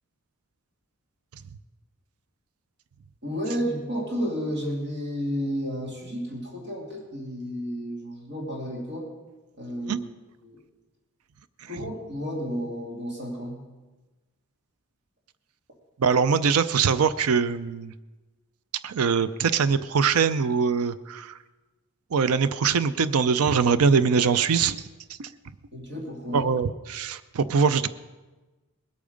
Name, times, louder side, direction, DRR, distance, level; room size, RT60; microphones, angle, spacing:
voice 1, 3.2-9.1 9.6-10.1 10.4-10.6 11.6-13.6 25.7-26.5, equal, 50° right, -2 dB, 2.6 m, -32 dB
voice 2, 16.0-17.9 18.8-21.4 22.1-24.8 25.2-25.3 26.3-27.9, right 6 dB, 80° right, 14 dB, 0.5 m, -22 dB
21.0 x 8.6 x 5.2 m, 1.2 s
head